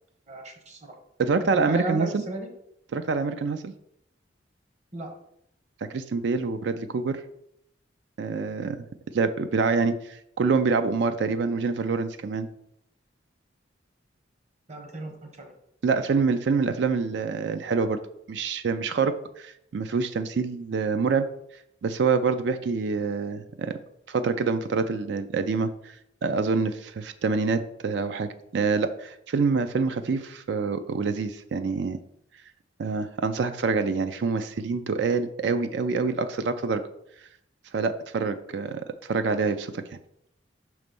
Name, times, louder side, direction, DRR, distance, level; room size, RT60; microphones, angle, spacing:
voice 1, 0.3-0.9 1.5-2.5 4.9-5.1 14.7-15.5, right 2 dB, 40° right, 3 dB, 1.1 m, -35 dB
voice 2, 1.2-2.2 2.9-3.7 5.9-7.2 8.2-8.9 9.1-12.5 15.8-18.0 18.3-21.3 21.8-23.7 24.1-25.9 26.2-32.0 32.8-36.8 37.7-39.8, right 4 dB, 65° right, 10 dB, 0.4 m, -26 dB
5.9 x 3.2 x 5.2 m, 0.77 s
head